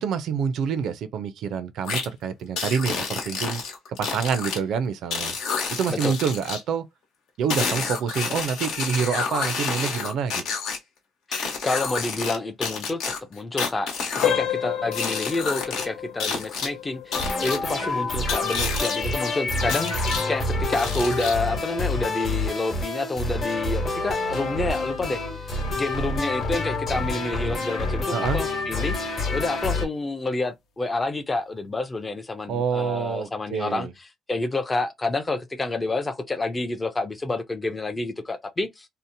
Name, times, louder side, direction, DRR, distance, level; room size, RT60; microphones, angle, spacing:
voice 1, 0.0-3.6 3.9-5.3 5.7-6.8 7.4-10.4 28.1-28.4 32.5-33.9, right 6 dB, 70° right, 0.4 m, -27 dB
sound 1, 1.8-2.0 2.6-4.6 5.1-6.6 7.5-10.8 11.3-12.4 12.6-14.3 14.9-15.8 16.2-16.7 17.1-17.6 18.3-19.0 19.7-20.2 20.7-21.5, left 5 dB, 80° left, 1.1 m, -29 dB
voice 2, 11.3-13.0 13.3-13.9 14.2-25.2 25.7-33.9 34.3-38.9, left 2 dB, 15° left, 0.4 m, -28 dB
sound 2, 14.2-24.9 25.2-25.5 26.1-26.2 26.7-26.8, left 9 dB, 65° left, 0.6 m, -34 dB
sound 3, 17.1-29.9, left 2 dB, 40° left, 1.0 m, -27 dB
2.7 x 2.0 x 2.6 m
cardioid pair, 155°, 0 cm